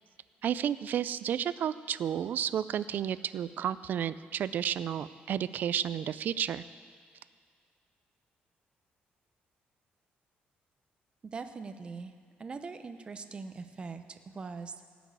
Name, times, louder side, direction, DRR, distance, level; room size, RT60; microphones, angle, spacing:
voice 1, 0.4-6.6, right 9 dB, 55° right, 15 dB, 0.4 m, -32 dB
voice 2, 11.2-12.1 12.4-14.7, right 4 dB, 30° right, 8 dB, 0.8 m, -41 dB
17.0 x 6.2 x 8.1 m, 2.2 s
cardioid pair, 140°, 4 cm